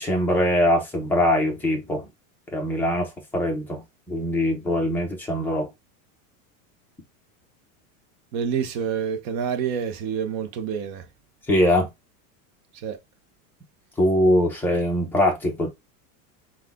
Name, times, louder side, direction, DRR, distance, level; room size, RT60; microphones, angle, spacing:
voice 1, 0.0-2.1 2.5-5.7 11.5-11.9 14.0-15.7, left 1 dB, 5° left, 0.6 m, -22 dB
voice 2, 8.3-11.0 12.8-13.0, right 7 dB, 35° right, 0.7 m, -27 dB
5.7 x 2.4 x 3.5 m
supercardioid pair, 180°, 41 cm